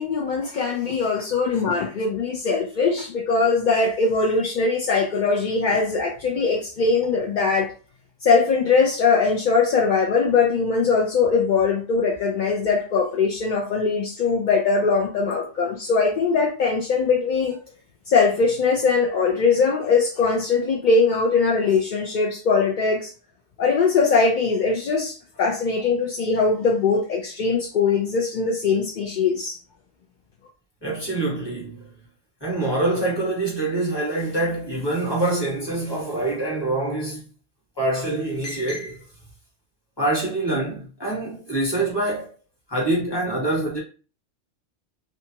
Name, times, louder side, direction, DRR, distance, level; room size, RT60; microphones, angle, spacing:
voice 1, 0.0-7.7 8.2-17.6 18.1-23.1 23.6-29.6, left 4 dB, 60° left, 0.5 m, -21 dB
voice 2, 30.8-31.9 32.4-37.2 37.8-39.0 40.0-42.3 42.7-43.8, right 2 dB, 20° left, 1.2 m, -25 dB
2.6 x 2.2 x 2.8 m
omnidirectional pair, 1.3 m